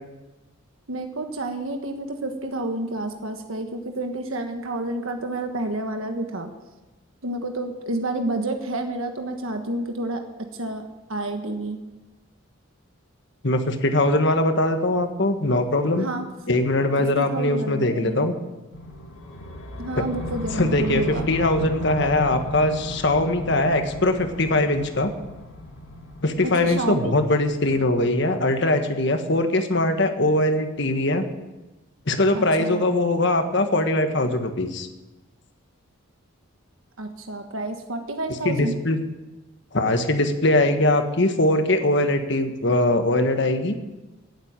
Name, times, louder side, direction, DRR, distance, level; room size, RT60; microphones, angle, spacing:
voice 1, 0.9-6.5 7.2-10.8 11.1-11.8 16.0-16.2 17.0-18.3 19.8-21.3 26.4-27.1 32.3-32.8 37.0-38.7, right 2 dB, 80° right, 5 dB, 1.4 m, -29 dB
voice 2, 13.4-16.1 16.5-18.3 20.6-21.0 21.3-25.1 26.2-31.2 32.1-34.9 38.4-39.0 39.7-43.8, left 1 dB, 55° left, 7 dB, 1.5 m, -21 dB
sound 1, 18.7-28.8, equal, 80° left, 2.6 m, -35 dB
17.5 x 8.0 x 9.0 m, 1.1 s
head